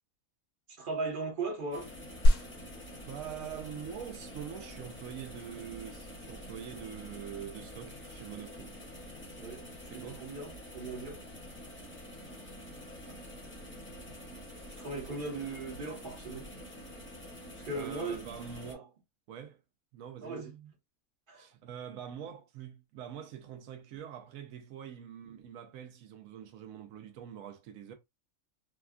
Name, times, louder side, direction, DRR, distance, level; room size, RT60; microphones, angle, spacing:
voice 1, 0.8-1.9 9.4-11.2 14.8-16.5 17.6-18.2 18.7-18.8 20.2-20.7 21.3-21.4, right 3 dB, 40° right, 1.2 m, -38 dB
sound 1, 1.7-18.7, equal, 10° left, 0.7 m, -47 dB
sound 2, 2.3-12.2, equal, 65° left, 1.1 m, -34 dB
voice 2, 3.1-8.7 9.9-10.3 17.7-19.0 19.3-19.6 19.9-20.4 21.3-27.9, right 9 dB, 75° right, 1.0 m, -44 dB
3.5 x 2.3 x 2.3 m
omnidirectional pair, 1.5 m